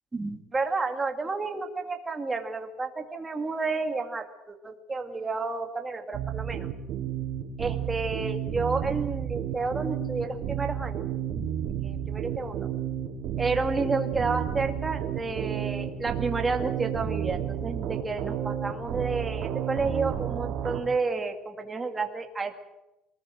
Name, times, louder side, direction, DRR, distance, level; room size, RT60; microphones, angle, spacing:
voice 1, 0.1-6.7 7.6-11.1 11.8-12.7 13.4-22.5, right 3 dB, 15° right, 5 dB, 2.2 m, -31 dB
sound 1, 6.1-20.8, right 9 dB, 50° right, 4.3 m, -32 dB
23.5 x 19.5 x 7.7 m, 0.94 s
cardioid pair, 150°, 0 cm